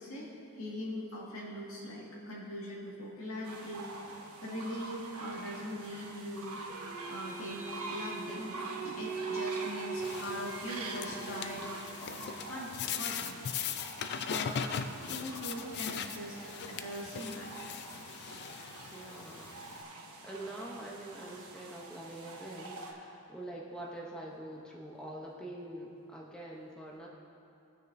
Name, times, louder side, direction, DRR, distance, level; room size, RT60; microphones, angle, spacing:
voice 1, 0.0-6.6 7.1-11.7 12.0-13.4 14.3-14.8 15.1-17.5, equal, 70° left, -4 dB, 1.9 m, -41 dB
sound 1, 3.4-22.9, right 2 dB, 85° right, 1.1 m, -46 dB
sound 2, 6.7-12.6, right 5 dB, 40° right, 0.6 m, -41 dB
sound 3, 10.0-19.8, left 7 dB, 50° left, 0.3 m, -40 dB
voice 2, 14.8-15.3 18.9-19.6 20.2-27.1, right 1 dB, 5° left, -4 dB, 0.7 m, -45 dB
18.5 x 6.3 x 2.6 m, 2.6 s
head